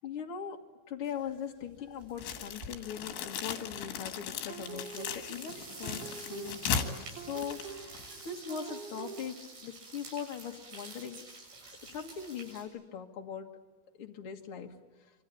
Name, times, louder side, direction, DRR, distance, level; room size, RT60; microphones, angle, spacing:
voice 1, 0.0-0.6 0.9-9.3 9.6-11.2 11.8-13.5 14.0-14.7, left 7 dB, 50° left, 2 dB, 1.7 m, -41 dB
sound 1, 1.1-1.4 1.7-12.7, right 3 dB, 65° right, 9.3 m, -50 dB
sound 2, 2.2-8.3, left 7 dB, 85° left, 4.3 m, -37 dB
sound 3, 4.5-9.3, right 7 dB, 85° right, 3.8 m, -46 dB
27.0 x 24.5 x 8.5 m, 1.3 s
omnidirectional pair, 5.2 m